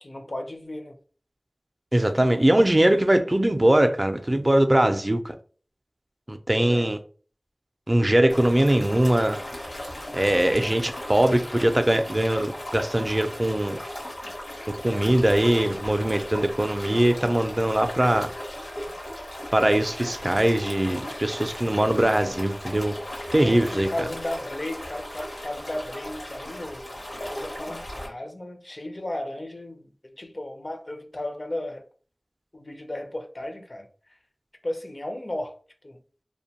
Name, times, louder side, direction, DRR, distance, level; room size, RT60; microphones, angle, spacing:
voice 1, 0.0-1.0 2.1-2.4 6.6-6.9 23.3-31.8 32.5-34.2 34.6-35.6 35.8-36.0, left 1 dB, 55° left, 0.5 m, -35 dB
voice 2, 1.9-5.3 6.3-7.0 7.9-9.4 10.1-13.8 14.8-18.3 19.5-22.9 23.3-23.9, right 1 dB, 30° right, 0.3 m, -21 dB
sound 1, 8.3-28.1, left 1 dB, 75° left, 0.9 m, -37 dB
2.5 x 2.1 x 2.8 m
wide cardioid pair, 40°, 0 cm